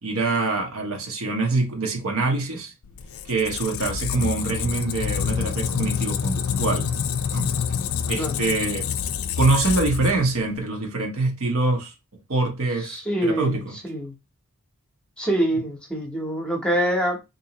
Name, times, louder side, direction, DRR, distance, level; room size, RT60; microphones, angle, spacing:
voice 1, 0.0-2.7 3.2-6.9 7.3-7.5 8.1-8.9 9.4-11.9 12.3-13.7, right 3 dB, 70° right, 0.9 m, -24 dB
Squeak, 2.9-10.6, left 7 dB, 70° left, 0.3 m, -27 dB
voice 2, 12.8-14.1 15.2-17.2, right 1 dB, 5° left, 0.8 m, -25 dB
3.7 x 2.7 x 2.9 m
head